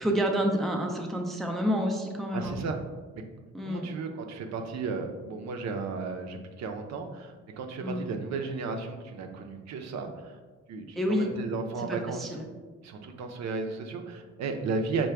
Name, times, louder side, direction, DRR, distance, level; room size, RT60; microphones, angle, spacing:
voice 1, 0.0-2.6 3.5-3.9 7.8-8.2 11.0-11.3 11.9-12.5, equal, ahead, 2 dB, 0.4 m, -29 dB
voice 2, 2.3-2.8 3.1-3.2 3.6-10.4 10.7-12.4 12.8-15.1, right 4 dB, 60° right, 4 dB, 0.5 m, -34 dB
4.7 x 2.2 x 3.3 m, 1.4 s
cardioid pair, 90°, 30 cm